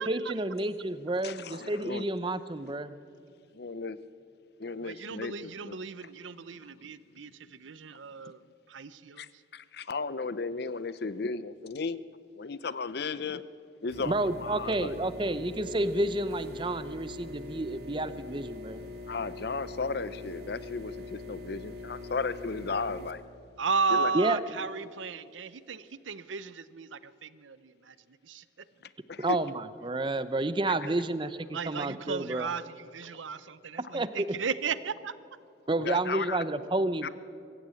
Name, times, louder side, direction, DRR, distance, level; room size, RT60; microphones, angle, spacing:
voice 1, 0.0-2.9 14.1-18.8 24.1-24.4 29.2-32.5 33.9-34.3 35.7-37.1, right 2 dB, 25° right, 13 dB, 0.7 m, -30 dB
voice 2, 1.2-2.1 3.5-4.0 4.6-5.8 9.2-12.0 12.4-13.4 13.8-15.0 19.1-23.2 23.9-24.1 29.1-29.4 35.8-36.4 37.0-37.1, left 4 dB, 55° left, 16 dB, 0.6 m, -35 dB
voice 3, 4.8-8.4 8.7-9.2 23.6-27.9 28.3-28.4 31.5-32.6 32.9-35.1, right 5 dB, 80° right, 15 dB, 0.7 m, -34 dB
sound 1, 13.9-23.1, left 3 dB, 55° right, 1.9 m, -43 dB
24.0 x 15.5 x 8.5 m, 2.5 s
head